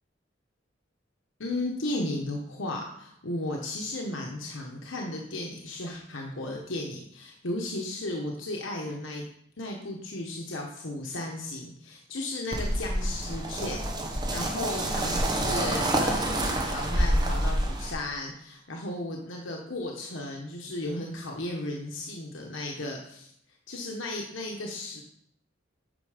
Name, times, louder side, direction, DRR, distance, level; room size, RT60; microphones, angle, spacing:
voice 1, 1.4-9.2 9.6-13.8 14.3-23.3 23.7-25.0, left 1 dB, 80° left, 0 dB, 1.2 m, -35 dB
sound 1, 12.5-17.9, right 1 dB, 20° right, 1.2 m, -27 dB
9.1 x 5.7 x 5.0 m, 0.70 s
head